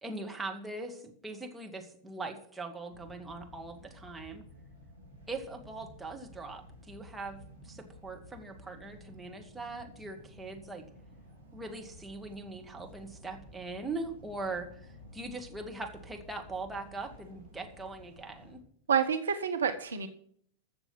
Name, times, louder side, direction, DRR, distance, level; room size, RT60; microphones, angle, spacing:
voice 1, 0.0-4.4 5.3-10.9 11.5-14.7 15.1-18.6, right 3 dB, 10° right, 2 dB, 2.2 m, -41 dB
sound 1, 2.9-18.6, equal, 90° right, 3.9 m, -53 dB
voice 2, 18.9-20.1, right 7 dB, 70° right, 8 dB, 1.0 m, -28 dB
14.5 x 7.0 x 5.8 m, 0.62 s
figure-of-eight pair, 90°, 0 cm